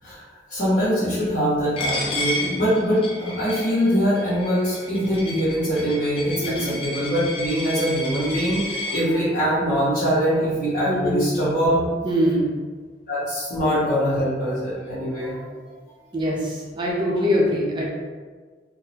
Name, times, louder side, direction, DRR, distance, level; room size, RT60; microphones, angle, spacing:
voice 1, 0.5-11.9 13.1-15.6, equal, 50° left, -15 dB, 1.1 m, -23 dB
Coin (dropping), 1.8-9.0, left 1 dB, 30° left, 0.5 m, -31 dB
voice 2, 10.9-11.2 12.0-12.5 16.1-17.9, equal, 25° right, -3 dB, 0.6 m, -23 dB
3.6 x 2.0 x 2.8 m, 1.5 s
head